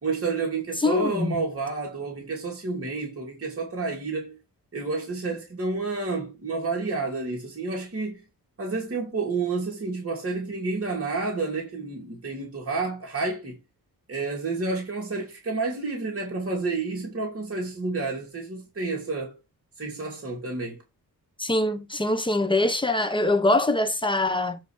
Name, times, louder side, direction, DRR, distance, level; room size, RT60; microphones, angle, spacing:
voice 1, 0.0-4.4 4.7-8.2 8.6-13.6 14.1-19.4 19.8-20.8, right 3 dB, 40° right, 2.7 m, -30 dB
voice 2, 0.8-1.3 21.4-24.6, left 2 dB, 15° left, 1.1 m, -23 dB
9.2 x 3.1 x 6.5 m
wide cardioid pair, 110°, 37 cm